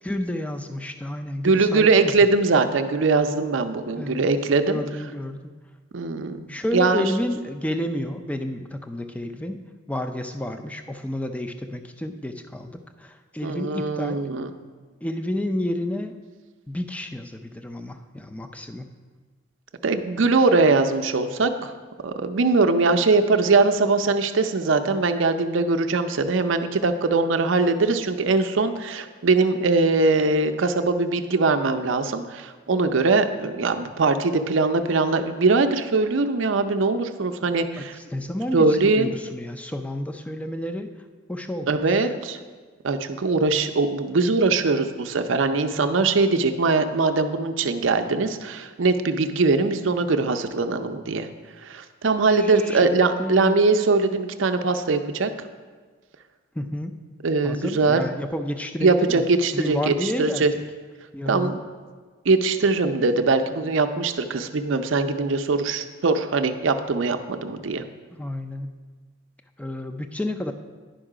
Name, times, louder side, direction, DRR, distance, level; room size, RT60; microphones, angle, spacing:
voice 1, 0.0-2.3 4.0-4.2 4.7-5.4 6.5-9.6 9.9-14.2 15.0-16.1 16.7-18.9 37.8-40.9 41.3-42.1 52.3-53.6 56.5-57.0 57.4-59.3 59.5-60.6 61.1-61.6 68.1-68.7 69.6-70.5, left 1 dB, 5° left, 6 dB, 0.4 m, -30 dB
voice 2, 1.4-4.8 5.9-7.1 13.4-14.5 19.8-21.7 22.0-38.0 38.5-39.1 41.7-42.4 42.8-51.3 51.6-55.5 57.2-58.0 58.8-60.5 61.3-61.6 62.3-67.8, right 3 dB, 65° right, 7 dB, 0.5 m, -21 dB
10.0 x 5.4 x 4.9 m, 1.5 s
head